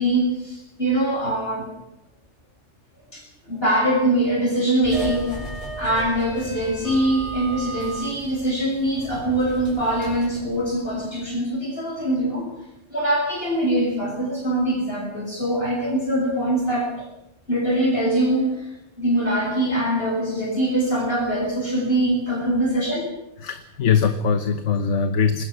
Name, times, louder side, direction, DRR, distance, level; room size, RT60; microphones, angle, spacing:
voice 1, 0.0-1.7 3.1-5.4 5.8-12.5 12.9-16.9 17.5-18.7 19.0-23.1, right 1 dB, 55° left, -2 dB, 6.2 m, -23 dB
sound 1, 4.8-11.3, right 1 dB, 30° left, 6.7 m, -35 dB
voice 2, 23.4-25.5, left 6 dB, 80° left, 9 dB, 1.4 m, -21 dB
25.5 x 20.5 x 6.1 m, 0.88 s
omnidirectional pair, 1.2 m